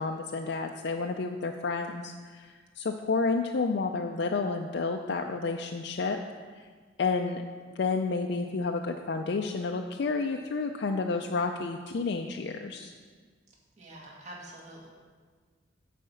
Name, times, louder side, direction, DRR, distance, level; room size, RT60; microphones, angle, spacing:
voice 1, 0.0-6.2 7.0-7.4 7.8-12.9, left 4 dB, 60° left, 4 dB, 0.4 m, -30 dB
voice 2, 13.8-14.9, right 1 dB, 40° right, -3 dB, 1.6 m, -46 dB
9.1 x 4.2 x 6.9 m, 1.5 s
head